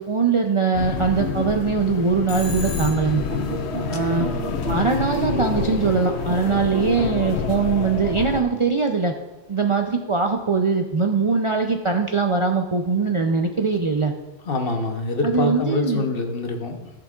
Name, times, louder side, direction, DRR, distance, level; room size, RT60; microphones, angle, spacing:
voice 1, 0.0-3.2 3.9-4.3 4.7-9.1 9.5-14.1 15.2-16.0, right 4 dB, 40° right, 3 dB, 0.4 m, -21 dB
sound 1, 0.7-8.4, left 7 dB, 85° left, 0.9 m, -28 dB
Telephone, 2.3-3.4, left 3 dB, 35° left, 1.2 m, -35 dB
sound 2, 3.3-8.7, right 5 dB, 70° right, 1.1 m, -32 dB
voice 2, 4.1-4.5 14.5-16.9, left 2 dB, 60° left, 4 dB, 1.1 m, -25 dB
14.5 x 6.6 x 2.4 m, 1.1 s
omnidirectional pair, 1.1 m